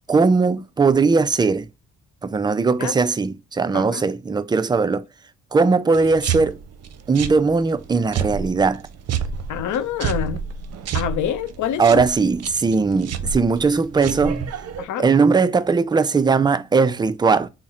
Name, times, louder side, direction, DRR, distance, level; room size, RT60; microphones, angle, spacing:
voice 1, 0.1-1.7 2.2-5.0 5.5-6.6 7.1-8.8 11.8-14.5 15.0-17.5, right 4 dB, 15° right, 0.3 m, -19 dB
sound 1, 5.9-14.8, right 7 dB, 55° right, 0.6 m, -30 dB
voice 2, 9.5-10.4 10.9-12.1 14.8-15.1, left 9 dB, 75° left, 0.7 m, -26 dB
3.6 x 2.0 x 4.2 m
cardioid pair, 90°, 30 cm